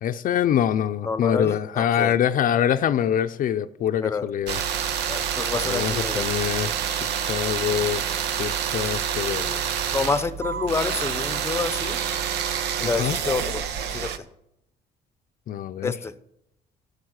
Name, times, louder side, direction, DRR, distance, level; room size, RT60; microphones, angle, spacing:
voice 1, 0.0-4.6 5.6-7.0 7.3-8.0 8.4-9.6 13.0-13.2 15.5-15.9, left 9 dB, 55° left, 0.6 m, -24 dB
voice 2, 1.0-2.1 4.0-4.3 5.1-6.3 9.9-12.0 12.8-13.7 13.9-14.1 15.8-16.2, left 4 dB, 15° left, 0.7 m, -28 dB
sound 1, 4.5-14.2, right 8 dB, 80° right, 1.0 m, -27 dB
13.0 x 6.8 x 8.1 m
cardioid pair, 110°, 17 cm